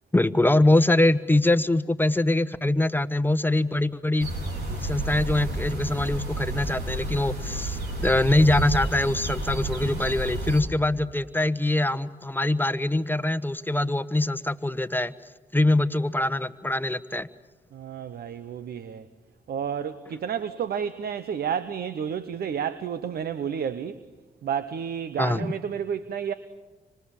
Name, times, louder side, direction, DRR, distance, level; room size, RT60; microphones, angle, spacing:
voice 1, 0.1-4.3 4.7-15.1 15.5-17.3 25.2-25.5, left 2 dB, 10° left, 13 dB, 1.2 m, -23 dB
sound 1, 4.2-10.6, right 2 dB, 80° right, 3.9 m, -31 dB
voice 2, 17.7-19.0 19.5-24.0 24.4-26.3, right 8 dB, 65° right, 13 dB, 1.0 m, -31 dB
26.5 x 26.0 x 7.3 m, 1.2 s
supercardioid pair, 45°, 17 cm